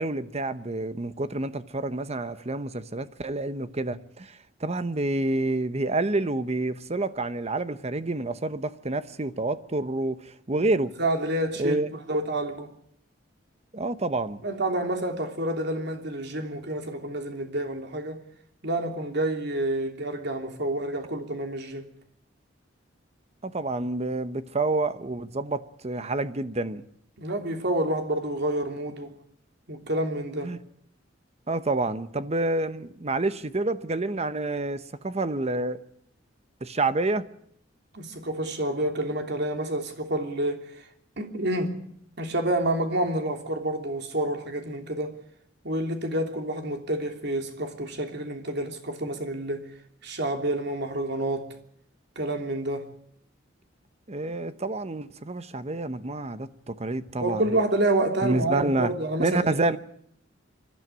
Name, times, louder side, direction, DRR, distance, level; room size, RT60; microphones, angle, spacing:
voice 1, 0.0-10.9 11.6-11.9 13.7-14.4 23.4-26.8 30.4-30.6 31.5-35.8 36.6-37.3 54.1-57.5 58.2-58.9 59.2-59.8, right 2 dB, 35° right, 1.0 m, -28 dB
voice 2, 11.0-12.7 14.4-18.2 18.6-21.9 27.2-29.2 29.7-30.5 37.9-40.9 41.2-41.8 42.2-45.2 45.6-49.7 50.0-51.5 52.1-52.9 57.2-59.6, right 1 dB, 60° right, 3.2 m, -28 dB
25.5 x 12.5 x 9.9 m
head